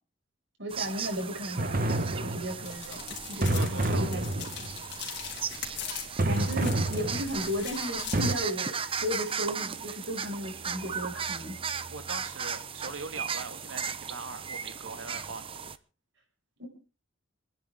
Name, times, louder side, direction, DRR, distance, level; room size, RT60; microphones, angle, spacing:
voice 1, 0.6-3.0 3.3-4.5 6.2-8.7 9.0-11.6 16.6-16.7, equal, 70° right, 1 dB, 5.4 m, -35 dB
sound 1, 0.7-15.8, right 6 dB, 30° right, 0.7 m, -37 dB
sound 2, 1.6-2.8 3.4-4.8 6.2-7.6 8.1-8.3, right 1 dB, 45° right, 1.0 m, -29 dB
sound 3, 2.7-8.3, left 8 dB, 60° left, 3.4 m, -41 dB
voice 2, 3.5-4.1 11.9-15.6, right 3 dB, 90° right, 8 dB, 1.9 m, -41 dB
26.5 x 10.0 x 3.5 m, 0.35 s
head